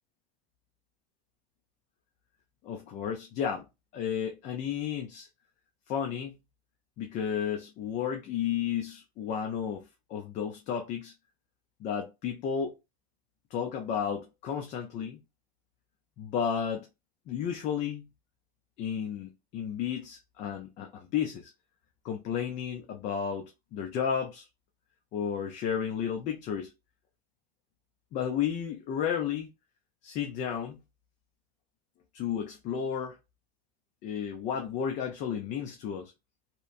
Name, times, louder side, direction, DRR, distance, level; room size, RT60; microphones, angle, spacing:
voice 1, 2.6-3.7 3.9-5.3 5.9-6.3 7.0-9.8 10.1-11.1 11.8-12.7 13.5-15.2 16.2-16.9 17.3-18.1 18.8-21.5 22.0-24.5 25.1-26.7 28.1-29.5 30.0-30.8 32.1-33.2 34.0-36.1, left 8 dB, 40° left, 0.5 m, -32 dB
2.8 x 2.1 x 2.5 m
supercardioid pair, 150°, 19 cm